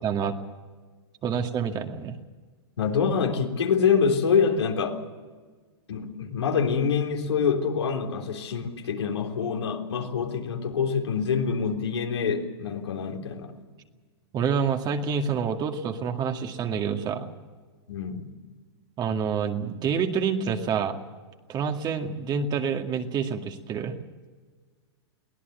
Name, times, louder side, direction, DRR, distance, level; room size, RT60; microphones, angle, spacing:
voice 1, 0.0-0.3 1.2-2.2 14.3-17.3 19.0-21.0 21.5-23.9, right 6 dB, 30° right, 5 dB, 2.1 m, -27 dB
voice 2, 2.8-5.0 5.9-13.5 17.9-18.3, left 6 dB, 85° left, 2 dB, 3.7 m, -25 dB
23.0 x 17.0 x 8.1 m, 1.4 s
hypercardioid pair, 125°, 14 cm